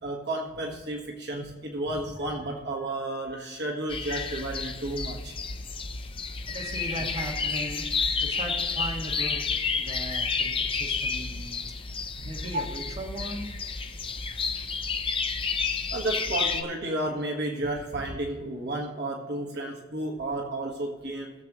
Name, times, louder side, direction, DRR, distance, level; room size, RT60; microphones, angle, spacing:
voice 1, 0.0-5.4 12.2-12.7 15.9-21.3, right 1 dB, 60° right, 1 dB, 1.6 m, -32 dB
sound 1, 3.9-16.6, left 5 dB, 30° left, 0.8 m, -30 dB
voice 2, 6.5-9.4 9.8-11.6 12.3-13.5, right 1 dB, 35° right, -1 dB, 2.0 m, -38 dB
20.5 x 7.4 x 3.1 m, 1.4 s
head